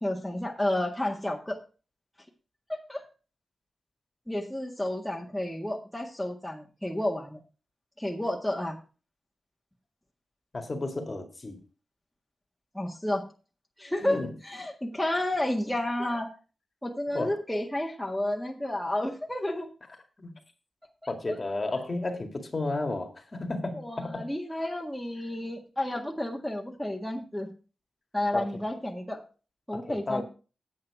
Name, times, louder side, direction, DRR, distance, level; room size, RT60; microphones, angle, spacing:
voice 1, 0.0-1.6 2.7-3.0 4.3-7.4 8.0-8.8 12.7-13.2 13.8-16.3 16.8-19.7 21.0-21.1 23.7-27.5 28.1-29.2 29.7-30.2, left 1 dB, 5° left, 1.7 m, -31 dB
voice 2, 10.5-11.6 14.0-14.3 17.1-17.3 20.2-20.3 21.1-24.3 28.3-28.6 29.7-30.2, left 2 dB, 35° left, 2.0 m, -32 dB
8.7 x 8.6 x 4.8 m
wide cardioid pair, 90°, 0 cm